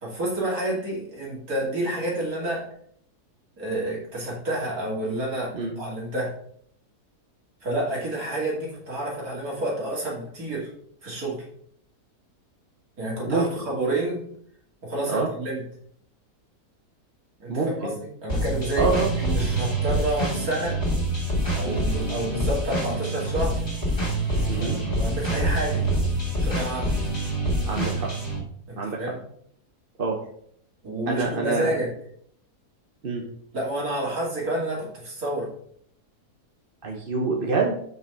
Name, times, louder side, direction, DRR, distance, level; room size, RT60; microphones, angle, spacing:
voice 1, 0.0-2.6 3.6-6.3 7.6-10.7 11.0-11.4 13.0-14.2 14.8-15.6 17.4-18.9 19.2-20.8 21.5-23.6 24.5-25.9 26.4-26.9 28.7-29.2 30.8-31.9 33.5-35.5, right 1 dB, 60° right, -4 dB, 3.1 m, -29 dB
voice 2, 17.5-18.0 18.8-19.1 21.6-21.8 24.5-24.8 27.6-28.1 28.8-29.1 30.0-30.2 31.1-31.7 33.0-33.2 36.8-37.8, right 4 dB, 40° right, 0 dB, 1.0 m, -26 dB
sound 1, 18.3-28.4, right 1 dB, 30° left, 2.5 m, -26 dB
5.7 x 5.3 x 5.5 m, 0.65 s
omnidirectional pair, 1.7 m